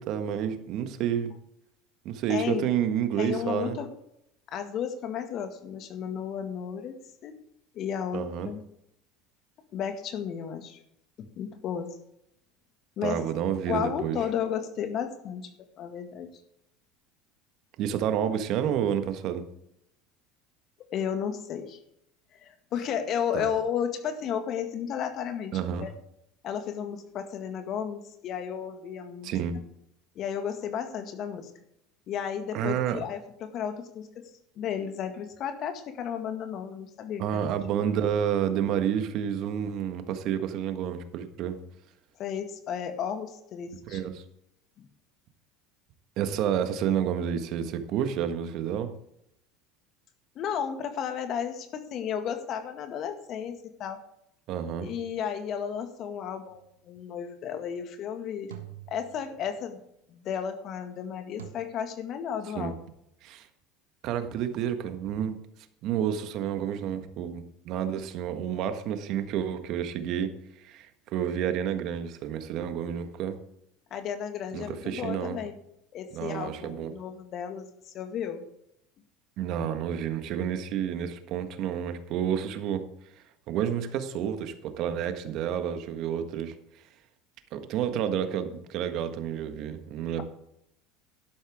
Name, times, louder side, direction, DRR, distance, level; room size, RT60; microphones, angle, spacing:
voice 1, 0.0-1.3 2.0-3.8 8.1-8.5 13.0-14.2 17.8-19.4 23.3-23.5 25.5-25.9 29.2-29.6 32.5-33.0 37.2-41.6 43.9-44.2 46.2-48.9 54.5-54.9 62.5-62.7 63.2-63.5 64.0-65.4 65.8-70.3 70.6-73.4 74.5-75.4 76.1-76.9 79.4-82.8 83.5-86.5 87.5-90.2, right 9 dB, 55° right, 8 dB, 1.5 m, -30 dB
voice 2, 2.3-2.7 3.2-3.9 4.5-7.4 7.7-8.6 9.7-10.8 11.2-12.0 13.0-13.2 13.7-16.4 20.9-21.8 22.4-25.9 26.4-29.3 30.2-31.5 32.1-34.3 34.6-37.2 42.2-44.0 44.8-44.9 50.4-54.0 54.8-58.6 58.9-59.8 60.1-62.8 73.9-75.5 75.9-78.4, left 8 dB, 50° left, 7 dB, 1.9 m, -33 dB
sound 1, 56.5-56.9 58.5-59.7 61.4-61.5, right 12 dB, 85° right, 1.4 m, -46 dB
12.0 x 11.5 x 3.7 m, 0.77 s
hypercardioid pair, 80°, 0 cm